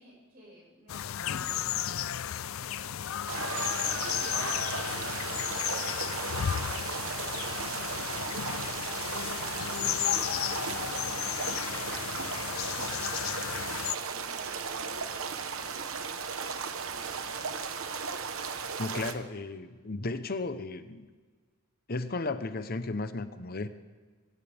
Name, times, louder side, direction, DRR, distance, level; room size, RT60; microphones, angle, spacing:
voice 1, 0.0-3.4 3.8-13.2 14.1-16.3, equal, 45° right, -3 dB, 6.4 m, -56 dB
sound 1, 0.9-14.0, left 10 dB, 85° left, 0.5 m, -33 dB
sound 2, 3.3-19.1, right 5 dB, 90° right, 1.2 m, -36 dB
voice 2, 18.8-21.1 21.9-23.7, left 3 dB, 50° left, 10 dB, 0.9 m, -34 dB
21.5 x 17.0 x 3.5 m, 1.4 s
head